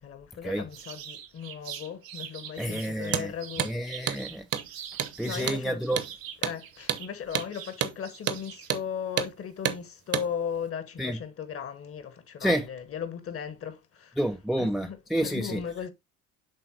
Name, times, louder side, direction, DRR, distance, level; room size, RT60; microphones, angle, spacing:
voice 1, 0.0-3.7 5.2-6.0 6.4-14.2 14.6-15.9, left 7 dB, 35° left, 1.1 m, -37 dB
sound 1, 0.7-5.5 5.8-8.7, right 9 dB, 75° right, 0.8 m, -43 dB
voice 2, 2.6-3.3 3.6-4.5 5.2-6.0 11.0-11.2 12.4-12.7 14.2-15.6, equal, ahead, 0.4 m, -29 dB
Hammer, 3.0-3.3 3.6-3.7 4.1-4.2 4.5-4.7 5.0-5.1 5.5-5.6 6.0-6.1 6.4-6.6 6.9-7.0 7.4-7.5 7.8-8.0 8.3-8.4 8.7-8.9 9.2-9.3 9.7-9.8 10.1-10.3, right 9 dB, 40° right, 0.9 m, -29 dB
10.0 x 3.8 x 2.8 m
figure-of-eight pair, 55°, 40 cm